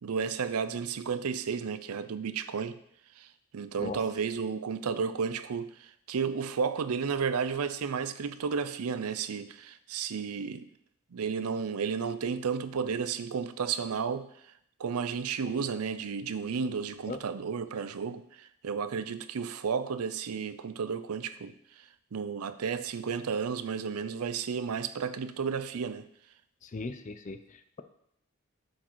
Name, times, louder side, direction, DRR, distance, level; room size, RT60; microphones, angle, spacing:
voice 1, 0.0-2.8 3.2-3.3 3.5-10.7 11.1-14.3 14.8-26.1, right 6 dB, 90° right, 0.5 m, -32 dB
voice 2, 26.6-27.4, left 3 dB, 35° left, 0.5 m, -37 dB
7.3 x 4.9 x 4.6 m
head